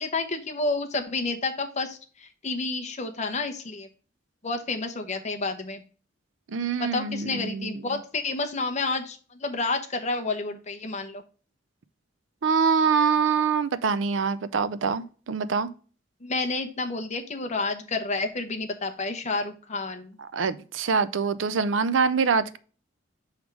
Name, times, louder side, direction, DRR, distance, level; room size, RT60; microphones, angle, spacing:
voice 1, 0.0-3.9 4.4-5.8 6.8-11.2 16.2-20.2, left 3 dB, 40° left, 0.9 m, -30 dB
voice 2, 6.5-7.7 12.4-15.7 20.3-22.6, right 5 dB, 80° right, 0.5 m, -24 dB
6.4 x 3.6 x 4.6 m
head